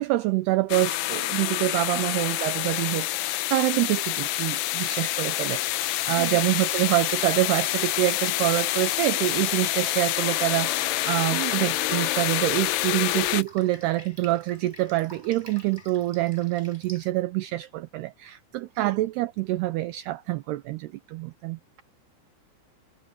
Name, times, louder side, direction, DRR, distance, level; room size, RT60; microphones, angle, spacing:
voice 1, 0.0-5.6 6.1-21.6, right 17 dB, 75° right, 2.5 m, -26 dB
sound 1, 0.7-13.4, left 16 dB, 75° left, 2.6 m, -27 dB
Drip, 5.6-17.1, right 1 dB, 10° right, 4.4 m, -49 dB
voice 2, 11.3-11.7 18.6-19.0, right 17 dB, 45° right, 3.1 m, -36 dB
omnidirectional pair, 5.4 m